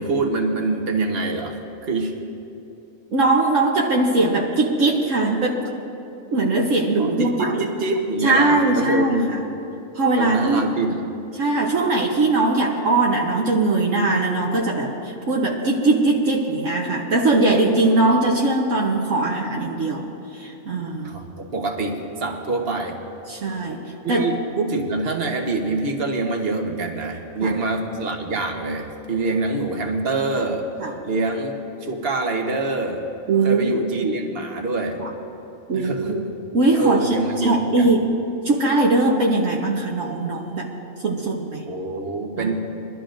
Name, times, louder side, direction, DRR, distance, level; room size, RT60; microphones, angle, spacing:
voice 1, 0.0-2.1 7.0-9.3 10.2-11.0 21.0-23.0 24.0-30.6 31.0-33.0 33.4-35.0 35.7-36.2 36.8-37.9 41.7-42.6, right 3 dB, 45° right, 3 dB, 1.3 m, -25 dB
voice 2, 3.1-5.6 6.3-7.7 8.2-9.4 9.9-10.7 11.3-21.1 23.3-24.2 27.4-27.5 30.8-30.9 33.3-33.7 34.0-34.2 35.0-35.1 35.7-36.2 36.5-37.2 37.4-38.2 38.4-40.7 41.0-41.6 42.4-42.5, right 2 dB, 65° right, -1 dB, 1.3 m, -20 dB
23.0 x 12.5 x 2.6 m, 2.9 s
omnidirectional pair, 1.5 m